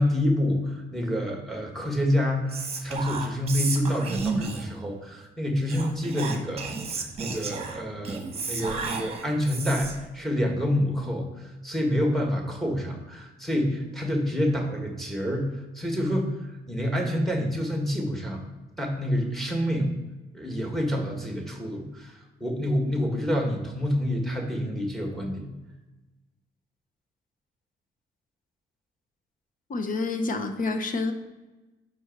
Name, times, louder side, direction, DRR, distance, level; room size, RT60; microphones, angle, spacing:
voice 1, 0.0-6.7 6.9-18.5 18.8-19.9 20.3-25.5, equal, ahead, 1 dB, 1.6 m, -28 dB
Whispering, 2.5-4.8 5.6-10.1, right 4 dB, 30° right, 1.1 m, -32 dB
voice 2, 29.7-31.1, left 3 dB, 40° left, 6 dB, 0.9 m, -28 dB
6.2 x 4.5 x 4.5 m, 1.1 s
cardioid pair, 90°, 20 cm